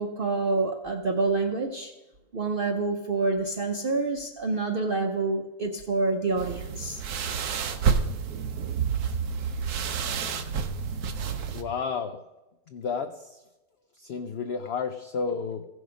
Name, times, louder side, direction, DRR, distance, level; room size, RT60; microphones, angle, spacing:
voice 1, 0.0-2.0 2.3-7.0, right 3 dB, 45° right, 0.8 m, -27 dB
sound 1, 6.4-11.6, right 6 dB, 80° right, 1.3 m, -29 dB
voice 2, 11.5-12.2 12.7-13.4 14.0-15.7, left 5 dB, 60° left, 0.6 m, -31 dB
15.5 x 6.3 x 5.1 m
omnidirectional pair, 1.6 m